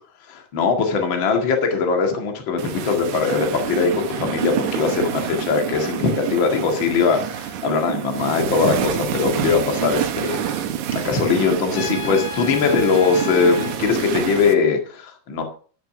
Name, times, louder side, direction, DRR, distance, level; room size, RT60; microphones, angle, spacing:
voice 1, 0.3-10.7 10.9-15.4, left 5 dB, 40° left, 4 dB, 2.3 m, -21 dB
sound 1, 2.6-14.5, right 10 dB, 70° right, 2.3 m, -27 dB
Trumpet, 11.7-13.8, left 5 dB, 80° left, 2.8 m, -33 dB
12.0 x 6.7 x 5.9 m, 0.42 s
omnidirectional pair, 3.8 m